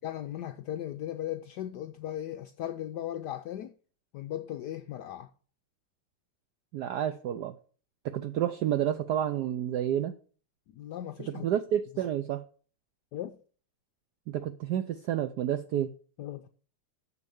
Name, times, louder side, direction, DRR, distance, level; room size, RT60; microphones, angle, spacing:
voice 1, 0.0-3.7 4.1-5.3 10.7-11.5 13.1-13.4 16.2-16.5, left 12 dB, 80° left, 0.9 m, -37 dB
voice 2, 6.7-7.5 8.0-10.1 11.3-12.4 14.3-15.9, right 10 dB, 80° right, 0.9 m, -30 dB
7.0 x 6.9 x 7.0 m
omnidirectional pair, 2.3 m